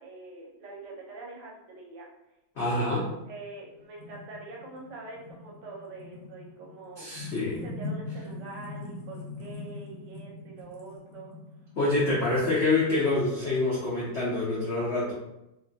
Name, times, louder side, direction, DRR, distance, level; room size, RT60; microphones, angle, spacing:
voice 1, 0.0-2.1 2.6-7.1 7.4-11.3 12.0-12.6, right 2 dB, 75° right, -2 dB, 1.3 m, -45 dB
voice 2, 2.6-3.1 7.0-7.6 11.8-15.1, left 2 dB, 80° left, -6 dB, 0.6 m, -26 dB
sound 1, 3.4-13.5, left 2 dB, 55° left, 1.0 m, -42 dB
3.1 x 2.2 x 2.5 m, 0.88 s
omnidirectional pair, 2.0 m